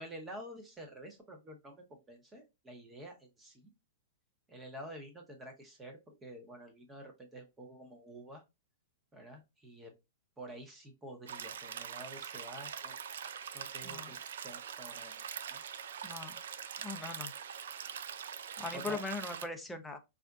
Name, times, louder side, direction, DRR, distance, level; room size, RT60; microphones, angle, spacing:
voice 1, 0.0-3.6 4.5-8.4 9.1-9.9 10.4-12.9 13.5-15.6 18.7-19.0, right 1 dB, 15° right, 0.9 m, -49 dB
sound 1, 11.3-19.5, right 8 dB, 75° right, 0.4 m, -43 dB
voice 2, 16.0-16.4 16.8-17.3 18.6-20.0, left 3 dB, 5° left, 0.5 m, -40 dB
4.1 x 2.5 x 2.3 m
hypercardioid pair, 145°, 0 cm